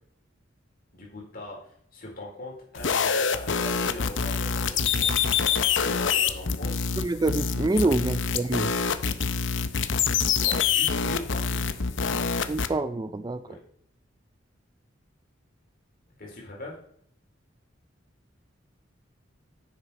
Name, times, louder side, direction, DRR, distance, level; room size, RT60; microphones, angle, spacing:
voice 1, 0.9-5.3 5.7-6.7 7.7-7.9 10.3-11.6 13.4-13.6 16.2-16.8, left 2 dB, 50° left, -3 dB, 4.1 m, -40 dB
sound 1, 2.8-12.7, left 6 dB, 70° left, 0.7 m, -26 dB
voice 2, 7.0-8.8 12.5-13.4, right 2 dB, 20° right, 12 dB, 0.4 m, -26 dB
10.0 x 7.3 x 4.3 m, 0.65 s
head